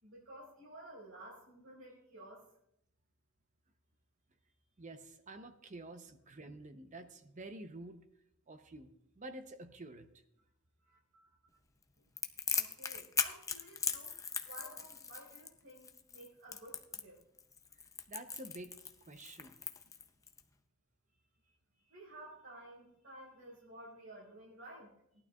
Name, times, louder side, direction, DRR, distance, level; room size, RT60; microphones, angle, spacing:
voice 1, 0.0-2.5 10.8-11.4 12.5-14.2 14.4-17.2 21.4-21.5 21.8-25.2, right 1 dB, 90° right, -5 dB, 5.1 m, -53 dB
voice 2, 4.8-8.0 8.5-8.9 9.2-10.1 18.1-18.7 19.1-19.6, right 2 dB, 35° right, 8 dB, 0.7 m, -49 dB
Crackle, 12.2-20.4, left 6 dB, 15° left, 0.5 m, -39 dB
18.5 x 11.5 x 2.4 m, 0.79 s
head